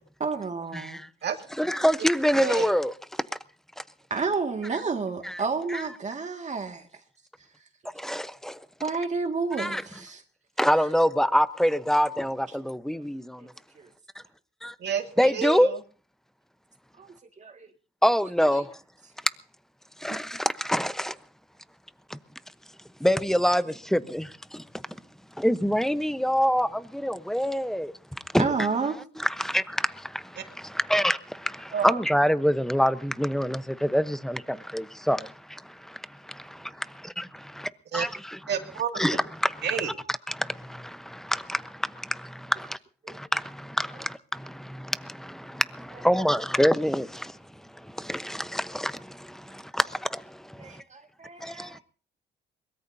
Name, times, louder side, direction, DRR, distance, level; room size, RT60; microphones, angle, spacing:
voice 1, 0.2-1.0 4.1-6.9 8.8-10.2 13.4-13.5 13.8-13.9 17.0-17.1 17.4-17.7 20.1-20.2 28.4-29.0 43.0-43.2 50.6-51.8, right 4 dB, 35° right, 2.0 m, -30 dB
voice 2, 0.7-1.1 1.6-2.9 3.8-3.9 5.2-5.4 5.7-5.8 7.9-8.6 9.6-9.8 10.6-13.5 14.6-14.7 15.2-15.7 18.0-18.7 20.0-21.2 22.1-22.2 23.0-24.6 24.9-25.0 25.4-27.9 28.3-28.5 29.2-38.4 39.0-39.5 40.3-42.8 43.1-50.8 51.4-51.8, equal, ahead, 1.0 m, -26 dB
voice 3, 2.4-2.7 14.8-15.8 30.4-30.5 31.7-32.0 37.9-38.1 38.5-39.0 39.6-39.9, right 8 dB, 60° right, 2.4 m, -30 dB
23.0 x 21.5 x 2.8 m
cardioid pair, 90°, 20 cm